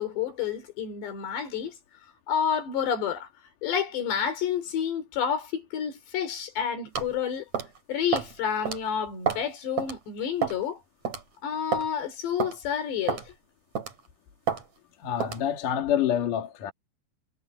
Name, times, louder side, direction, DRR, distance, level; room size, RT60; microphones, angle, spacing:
voice 1, 0.0-1.8 2.3-3.3 3.6-7.5 7.9-10.8 11.4-13.3, left 8 dB, 90° left, 6.1 m, -29 dB
sound 1, 7.0-7.1 7.5-7.8 8.1-8.3 8.7-8.8 9.3-9.5 9.8-9.9 10.4-10.7 11.1-11.2 11.7-11.9 12.4-12.6 13.1-13.3 13.8-14.0 14.5-14.6 15.2-15.4, right 7 dB, 45° right, 4.6 m, -29 dB
voice 2, 15.0-16.7, left 10 dB, 55° left, 3.4 m, -27 dB
omnidirectional pair, 4.8 m